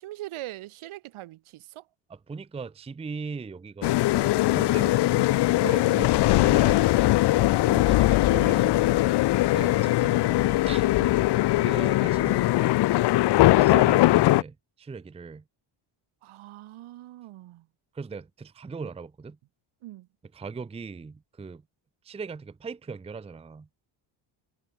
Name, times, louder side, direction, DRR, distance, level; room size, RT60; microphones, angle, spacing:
voice 1, 0.0-1.9 5.9-6.0 7.7-8.3 11.0-11.2 16.2-17.7 19.8-20.1, right 16 dB, 75° right, 1.9 m, -42 dB
voice 2, 2.1-7.4 7.9-11.0 11.6-12.8 13.5-15.4 17.9-19.4 20.3-21.6 22.0-23.7, right 5 dB, 15° right, 0.6 m, -39 dB
sound 1, 3.8-14.4, left 17 dB, 55° left, 0.6 m, -21 dB
cardioid pair, 145°, 49 cm